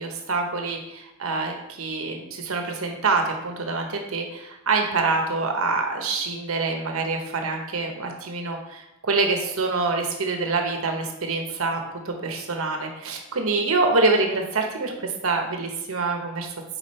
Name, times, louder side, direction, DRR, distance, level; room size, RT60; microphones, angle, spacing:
voice 1, 0.0-16.5, right 3 dB, 90° right, 3 dB, 1.0 m, -26 dB
5.0 x 4.9 x 4.3 m, 0.92 s
head